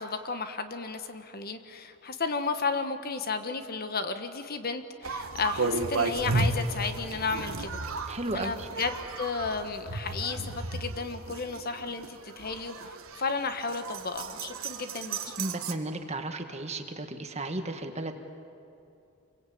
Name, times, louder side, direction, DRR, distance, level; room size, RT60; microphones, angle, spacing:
voice 1, 0.0-7.8 8.3-15.3, left 4 dB, 45° left, 8 dB, 1.3 m, -33 dB
sound 1, 5.0-15.7, right 3 dB, 65° right, 1.6 m, -34 dB
voice 2, 8.1-8.7 15.4-18.1, right 2 dB, 30° right, 6 dB, 1.7 m, -34 dB
28.5 x 22.5 x 8.7 m, 2.7 s
head